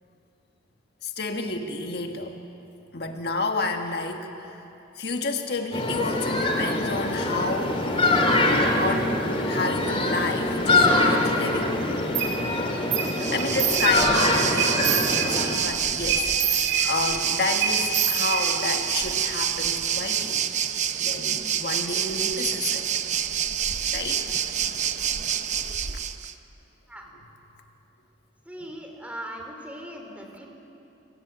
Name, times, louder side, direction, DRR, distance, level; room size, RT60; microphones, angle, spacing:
voice 1, 1.0-2.4 2.9-4.6 5.0-7.9 8.8-11.7 13.0-20.4 21.0-22.8 23.9-24.2 25.9-26.0, left 3 dB, 55° left, 3 dB, 1.7 m, -30 dB
sound 1, 5.7-15.5, left 2 dB, 30° left, 3.1 m, -24 dB
sound 2, 12.2-12.3 12.9-13.1 13.4-14.2 14.6-15.6 16.1-17.2 17.6-18.8, right 7 dB, 55° right, 4.4 m, -27 dB
Waves surf, 13.0-26.3, right 9 dB, 35° right, 0.8 m, -27 dB
voice 2, 28.5-30.5, right 1 dB, 5° right, 2 dB, 3.2 m, -39 dB
27.5 x 24.5 x 8.2 m, 2.9 s
head